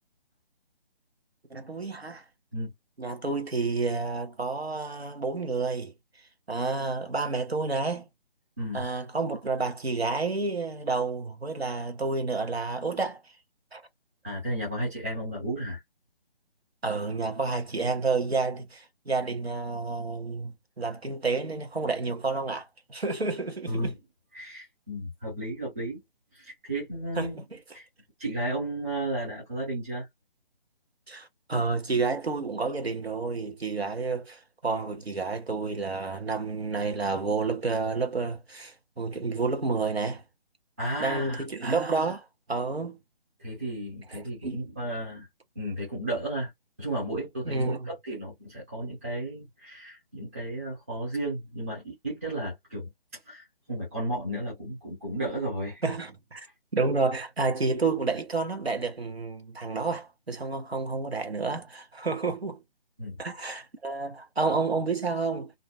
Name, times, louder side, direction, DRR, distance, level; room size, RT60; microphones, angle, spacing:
voice 1, 1.5-2.2 3.0-5.9 6.5-8.1 8.7-13.2 13.7-13.8 16.8-23.9 27.2-27.6 31.1-40.2 41.0-43.0 44.1-44.6 47.4-47.9 55.8-56.5 56.7-62.6 63.2-65.5, right 4 dB, 90° right, 0.9 m, -30 dB
voice 2, 14.2-15.8 23.7-23.9 24.3-26.0 26.3-27.4 27.7-27.9 28.2-30.1 40.8-41.4 43.4-45.3 45.6-46.5 46.8-55.8 63.0-63.2, right 1 dB, 15° right, 0.5 m, -33 dB
2.5 x 2.1 x 2.2 m
figure-of-eight pair, 145°, 30 cm